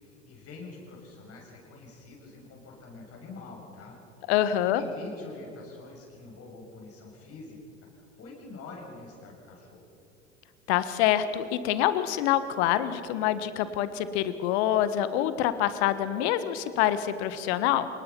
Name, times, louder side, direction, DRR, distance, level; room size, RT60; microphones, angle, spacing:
voice 1, 0.0-4.0 4.7-7.6 7.9-9.8, left 3 dB, 35° left, -1 dB, 7.0 m, -45 dB
voice 2, 4.3-4.8 10.7-17.9, left 11 dB, 55° left, 13 dB, 1.5 m, -26 dB
28.0 x 19.5 x 5.9 m, 2.6 s
figure-of-eight pair, 75°, 39 cm